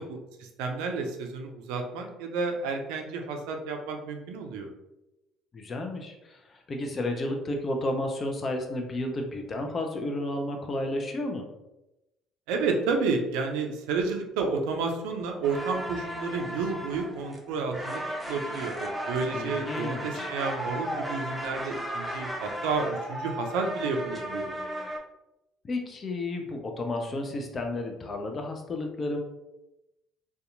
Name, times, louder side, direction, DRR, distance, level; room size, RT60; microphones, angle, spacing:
voice 1, 0.0-4.7 12.5-24.5, right 4 dB, 75° right, 4 dB, 0.4 m, -31 dB
voice 2, 5.5-11.4 19.3-20.3 25.6-29.2, left 1 dB, 40° left, 3 dB, 0.5 m, -32 dB
sound 1, 15.4-25.0, equal, 5° right, 0.6 m, -35 dB
2.7 x 2.2 x 2.5 m, 0.94 s
hypercardioid pair, 60°, 0 cm